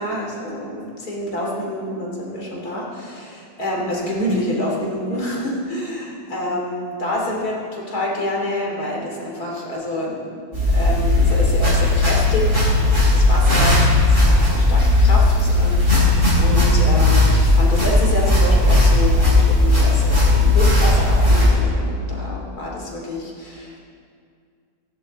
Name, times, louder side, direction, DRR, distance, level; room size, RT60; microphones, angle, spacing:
voice 1, 0.0-23.8, left 1 dB, 80° left, -2 dB, 3.5 m, -27 dB
sound 1, 10.5-21.5, left 2 dB, 50° right, 5.3 m, -16 dB
16.0 x 16.0 x 4.2 m, 2.1 s
omnidirectional pair, 1.6 m